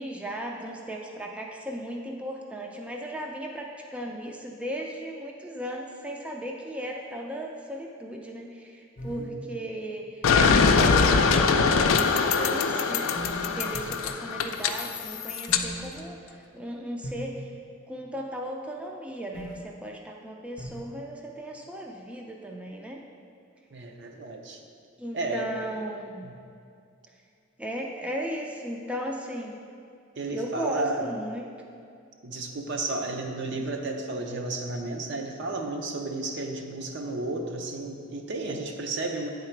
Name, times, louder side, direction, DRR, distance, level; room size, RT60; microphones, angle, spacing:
voice 1, 0.0-13.1 13.5-17.5 17.9-23.0 25.0-26.2 27.6-29.6 30.3-31.4, right 1 dB, 5° right, 0 dB, 0.4 m, -36 dB
sound 1, 9.0-9.3 11.0-11.7 13.2-14.0 15.5-16.1 17.0-17.3 19.3-19.6 20.6-20.8, right 1 dB, 45° left, 0.7 m, -38 dB
sound 2, 10.2-15.6, left 5 dB, 85° left, 0.4 m, -22 dB
voice 2, 23.7-24.6 25.1-25.5 26.2-26.4 30.2-31.1 32.2-39.3, right 2 dB, 60° right, 3 dB, 0.6 m, -32 dB
8.8 x 3.8 x 4.5 m, 2.4 s
head